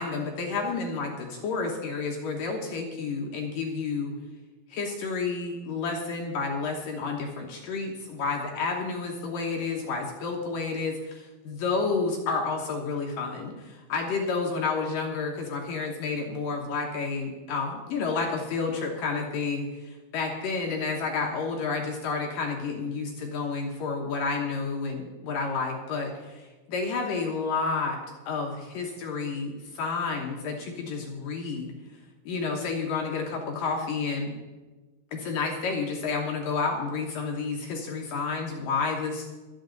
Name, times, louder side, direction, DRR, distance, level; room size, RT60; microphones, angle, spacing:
voice 1, 0.0-4.1 4.7-28.0 28.3-31.7 32.3-34.3 35.1-39.3, left 4 dB, 65° left, 1 dB, 2.3 m, -30 dB
24.5 x 8.8 x 4.0 m, 1.2 s
omnidirectional pair, 5.2 m